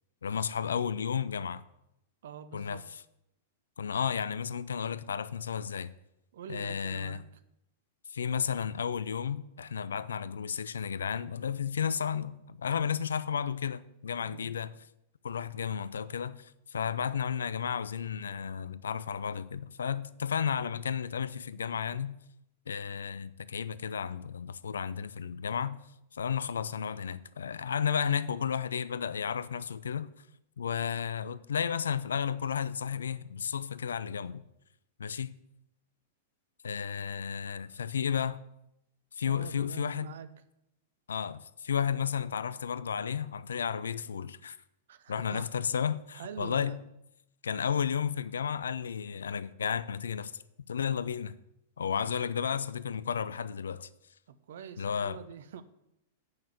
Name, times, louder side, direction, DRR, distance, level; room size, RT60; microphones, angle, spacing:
voice 1, 0.2-1.6 2.5-2.8 3.8-5.9 6.5-7.2 8.1-14.7 15.2-22.2 22.7-25.8 26.1-30.1 30.6-34.4 35.0-35.3 36.6-38.4 39.2-40.1 41.1-44.6 45.1-46.8 47.4-50.3 50.7-51.3 51.8-53.9 54.8-55.2, left 7 dB, 70° left, 0.4 m, -33 dB
voice 2, 2.2-2.9 6.3-7.3 14.2-14.5 39.2-40.4 44.9-45.5 46.1-46.8 54.3-55.6, right 7 dB, 60° right, 0.8 m, -45 dB
8.7 x 6.2 x 8.2 m
figure-of-eight pair, 100°, 0 cm